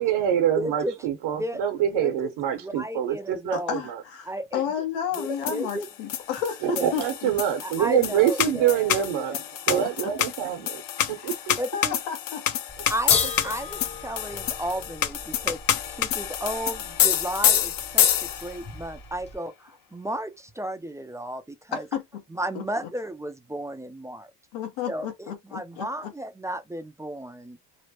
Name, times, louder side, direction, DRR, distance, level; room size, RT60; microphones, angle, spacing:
voice 1, 0.0-4.0 6.6-10.8 11.1-11.5, right 10 dB, 75° right, 1.0 m, -25 dB
voice 2, 0.6-0.9 1.4-1.6 1.9-2.3 2.6-3.7 4.3-4.6 5.2-5.9 6.7-7.1 7.6-8.9 9.3-9.4 11.6-12.0 12.9-21.8 22.3-24.3 24.9-27.6, right 1 dB, 5° right, 0.3 m, -33 dB
voice 3, 3.5-7.3 11.1-11.3 11.7-12.4 21.7-22.0 22.5-22.6 24.5-26.1, left 8 dB, 85° left, 1.1 m, -32 dB
sound 1, 5.1-18.7, left 10 dB, 50° left, 0.6 m, -27 dB
Bell / Dishes pots and pans, 12.7-19.3, left 3 dB, 15° left, 0.8 m, -37 dB
3.1 x 2.1 x 2.8 m
cardioid pair, 100°, 45 cm